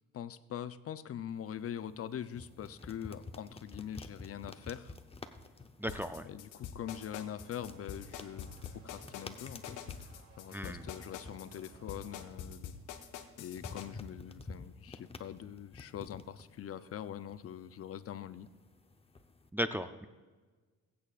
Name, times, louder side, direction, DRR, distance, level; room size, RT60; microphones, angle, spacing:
voice 1, 0.1-5.0 6.2-8.5 8.7-9.8 10.4-12.8 13.4-18.5, left 9 dB, 50° left, 13 dB, 0.6 m, -43 dB
sound 1, 1.3-19.5, left 3 dB, 20° left, 0.8 m, -52 dB
voice 2, 5.8-6.3 10.5-10.8 19.5-20.1, equal, 5° right, 8 dB, 0.5 m, -36 dB
sound 2, 5.9-13.9, left 8 dB, 85° left, 1.0 m, -45 dB
sound 3, 6.8-12.3, right 2 dB, 80° right, 2.8 m, -60 dB
21.5 x 8.5 x 2.5 m, 1.4 s
cardioid pair, 90°, 30 cm